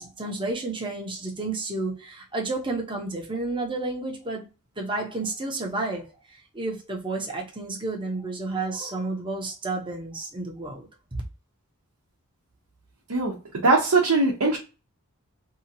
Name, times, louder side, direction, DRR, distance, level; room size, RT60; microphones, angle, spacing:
voice 1, 0.0-4.5 4.8-11.2, right 2 dB, 20° right, 0.7 m, -31 dB
voice 2, 13.6-14.6, right 3 dB, 75° right, 0.7 m, -20 dB
2.8 x 2.4 x 2.7 m
head